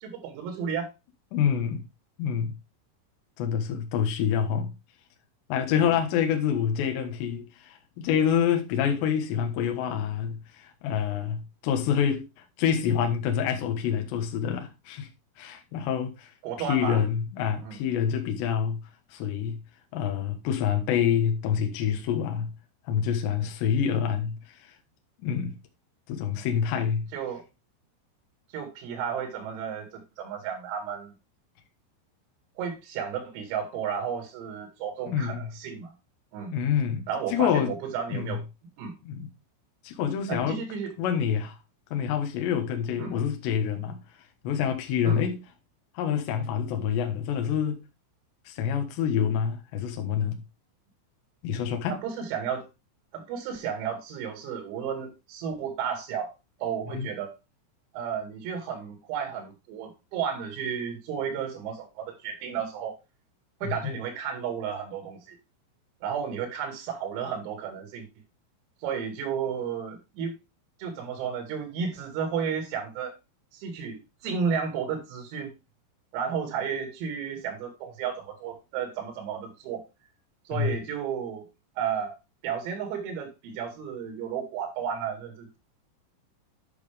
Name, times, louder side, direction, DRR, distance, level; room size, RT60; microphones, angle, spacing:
voice 1, 0.0-0.9 1.4-1.5 5.8-5.9 16.4-17.0 17.6-17.8 27.1-27.4 28.5-31.1 32.6-35.9 36.3-36.5 37.1-38.4 38.8-39.0 40.3-40.9 43.0-43.2 45.0-45.2 51.9-52.7 53.1-56.3 56.6-57.3 57.9-63.0 63.6-65.4 66.0-68.1 68.8-70.4 70.8-73.2 73.5-75.5 76.1-79.9 80.5-81.5 81.8-82.2 82.4-85.6, right 7 dB, 85° right, 5.1 m, -33 dB
voice 2, 1.3-1.8 2.2-2.5 3.4-4.7 5.5-12.2 12.6-15.1 15.4-16.3 16.7-18.8 19.1-19.6 19.9-22.5 22.9-24.4 25.2-25.5 26.1-27.0 35.1-35.5 36.5-37.0 37.3-37.7 38.1-38.4 39.0-39.3 39.8-40.6 41.0-41.6 41.9-44.0 44.4-45.4 45.9-47.8 48.5-50.4 51.4-52.0 56.9-57.1 63.6-63.9 80.5-80.7, left 8 dB, 70° left, 3.2 m, -27 dB
11.0 x 5.8 x 3.4 m
omnidirectional pair, 5.9 m